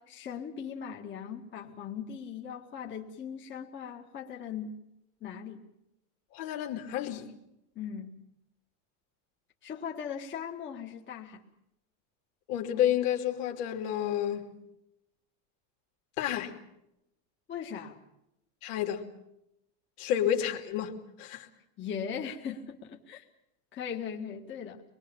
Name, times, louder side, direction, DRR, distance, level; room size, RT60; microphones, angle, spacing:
voice 1, 0.0-4.8 5.2-5.6 7.8-8.2 9.6-11.4 17.5-18.0 21.8-23.3 23.7-24.8, left 7 dB, 25° left, 2.1 m, -39 dB
voice 2, 6.3-7.3 12.5-14.5 16.2-16.5 18.6-19.0 20.0-21.5, left 10 dB, 60° left, 2.9 m, -30 dB
24.5 x 22.0 x 7.2 m
supercardioid pair, 150°, 43 cm